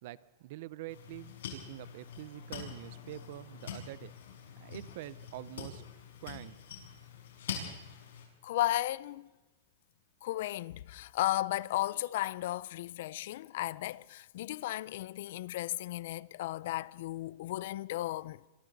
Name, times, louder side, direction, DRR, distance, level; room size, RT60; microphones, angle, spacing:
voice 1, 0.0-4.1 4.6-5.8 6.2-6.5, right 16 dB, 45° right, 0.6 m, -45 dB
sound 1, 0.9-8.3, left 7 dB, 85° left, 6.7 m, -45 dB
voice 2, 8.4-9.3 10.2-18.4, left 15 dB, 55° left, 0.5 m, -34 dB
27.5 x 23.5 x 4.1 m
supercardioid pair, 170°, 0 cm